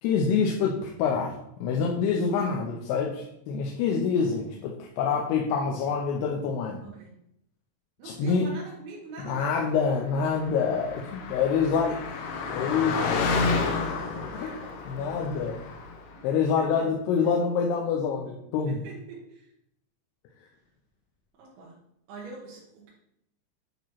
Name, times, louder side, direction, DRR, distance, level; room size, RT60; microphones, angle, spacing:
voice 1, 0.0-6.8 8.0-8.5 9.2-11.9 12.5-13.1 14.3-14.5 14.9-15.6 16.2-18.8, left 6 dB, 90° left, 0 dB, 2.8 m, -26 dB
voice 2, 6.8-7.2 8.0-9.7 11.5-12.2 13.0-15.3 16.1-16.2 16.6-16.9 17.2-17.3 18.7-19.5 21.3-21.8 22.1-22.9, right 3 dB, 80° right, -4 dB, 3.1 m, -44 dB
Car passing by, 10.2-16.1, left 4 dB, 75° left, 2.3 m, -30 dB
9.1 x 3.0 x 5.8 m, 0.78 s
omnidirectional pair, 4.6 m